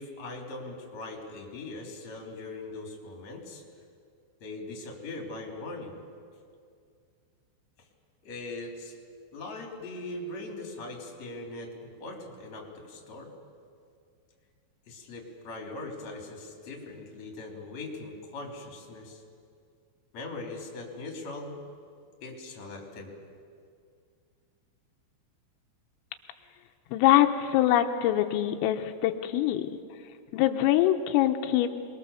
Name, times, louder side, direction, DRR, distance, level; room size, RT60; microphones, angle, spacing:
voice 1, 0.0-3.6 4.4-6.0 7.8-7.9 8.2-9.0 9.3-13.3 14.9-19.2 20.1-21.6 22.2-23.1, left 2 dB, 35° left, 1 dB, 4.0 m, -40 dB
voice 2, 26.9-29.7 30.3-31.7, left 12 dB, 90° left, 6 dB, 3.5 m, -24 dB
27.5 x 21.5 x 7.0 m, 2.3 s
omnidirectional pair, 5.9 m